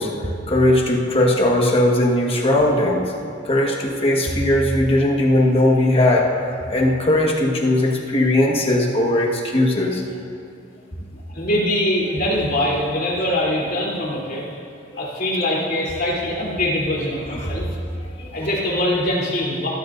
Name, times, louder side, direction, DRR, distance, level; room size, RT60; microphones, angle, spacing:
voice 1, 0.0-3.1 3.4-6.3 6.7-10.0 14.9-15.1 17.4-17.5 18.2-18.3, left 1 dB, 30° left, -1 dB, 1.5 m, -18 dB
voice 2, 11.1-14.5 15.0-17.7 18.3-19.7, left 1 dB, 50° left, -5 dB, 3.4 m, -23 dB
19.5 x 13.0 x 2.6 m, 2.5 s
head